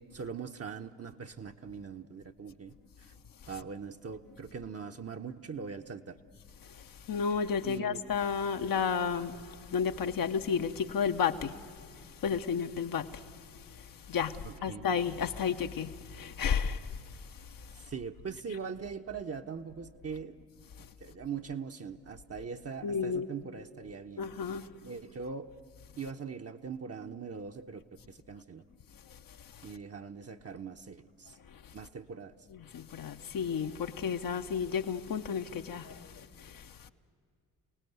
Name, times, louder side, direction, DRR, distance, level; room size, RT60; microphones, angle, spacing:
voice 1, 0.0-2.7 3.5-6.2 7.6-8.0 14.4-14.9 17.9-20.4 21.0-24.3 24.8-25.5 26.0-28.6 29.6-31.3 31.7-32.3, right 6 dB, 35° right, 1.0 m, -41 dB
voice 2, 7.1-11.6 12.2-13.2 14.1-14.4 14.6-16.9 18.5-18.6 22.8-23.3 24.2-24.6 32.5-36.9, left 6 dB, 55° left, 1.0 m, -32 dB
29.0 x 18.0 x 8.1 m
hypercardioid pair, 45°, 41 cm